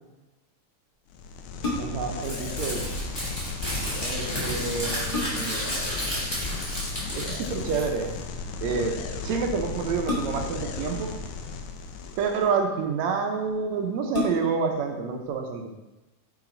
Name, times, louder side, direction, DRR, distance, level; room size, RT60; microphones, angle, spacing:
sound 1, 1.1-12.5, left 5 dB, 80° left, 2.0 m, -35 dB
sound 2, 1.6-2.2 4.2-4.3 4.7-5.7 7.2-7.6 10.0-10.7 11.6-12.3 13.1-13.2 13.5-13.6 14.1-14.7 15.2-15.3, left 2 dB, 55° left, 0.6 m, -32 dB
voice 1, 1.8-2.9 4.0-6.3 7.2-8.2 8.6-11.2 12.2-15.8, right 5 dB, 75° right, 3 dB, 1.8 m, -29 dB
Crumpling crinkling, 2.2-8.1, equal, 10° left, 2.1 m, -32 dB
8.9 x 3.9 x 3.8 m, 1.1 s
omnidirectional pair, 3.4 m